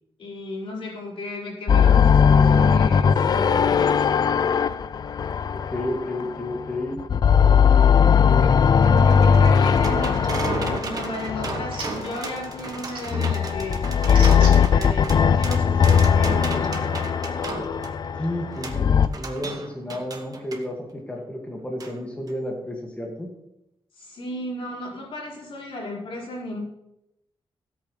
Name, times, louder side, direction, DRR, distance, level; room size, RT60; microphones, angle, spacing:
voice 1, 0.2-4.1 8.2-17.0 24.0-26.6, left 1 dB, 75° left, -3 dB, 4.2 m, -34 dB
sound 1, 1.7-6.6 7.0-12.3 13.1-19.1, left 7 dB, 45° left, 0.4 m, -19 dB
voice 2, 5.5-7.0 7.9-8.2 18.2-23.3, left 1 dB, 15° left, -1 dB, 1.9 m, -31 dB
sound 2, 8.5-20.7 21.8-21.9 22.3-22.4, right 4 dB, 40° right, 1.2 m, -35 dB
sound 3, 10.6-16.0, right 4 dB, 60° right, 2.4 m, -42 dB
17.0 x 8.3 x 3.2 m, 0.84 s
wide cardioid pair, 145°, 9 cm